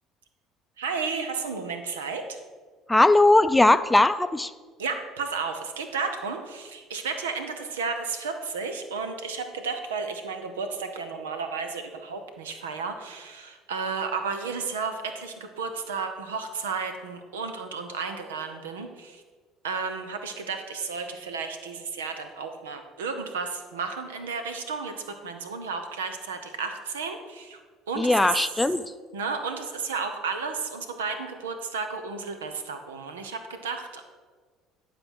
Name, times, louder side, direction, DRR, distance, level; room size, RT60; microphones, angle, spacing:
voice 1, 0.8-2.4 4.8-19.2 19.6-27.6 27.9-28.4 29.1-34.0, right 5 dB, 90° right, 7 dB, 0.7 m, -33 dB
voice 2, 2.9-4.5 28.0-28.8, left 2 dB, 10° left, 13 dB, 0.5 m, -19 dB
11.0 x 4.2 x 6.3 m, 1.5 s
hypercardioid pair, 65°, 0 cm